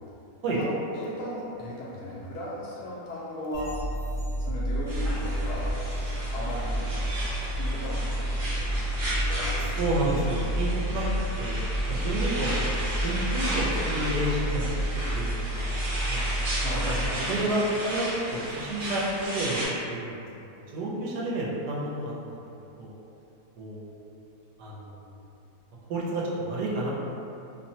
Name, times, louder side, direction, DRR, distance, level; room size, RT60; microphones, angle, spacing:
voice 1, 0.5-3.8 4.4-5.7 6.3-6.8 7.5-9.8 10.4-10.6 16.6-16.9, left 1 dB, 75° left, -6 dB, 1.1 m, -37 dB
sound 1, 3.5-17.1, right 1 dB, 15° left, 0.8 m, -30 dB
sound 2, 4.9-19.7, right 1 dB, 55° right, 1.0 m, -34 dB
voice 2, 9.8-11.0 11.4-11.6 11.9-15.7 16.0-16.2 16.9-20.2 20.7-22.4 22.8-22.9 23.6-23.9 24.6-25.0 25.9-26.9, right 1 dB, 80° right, -5 dB, 1.1 m, -30 dB
2.9 x 2.1 x 2.7 m, 2.7 s
omnidirectional pair, 1.8 m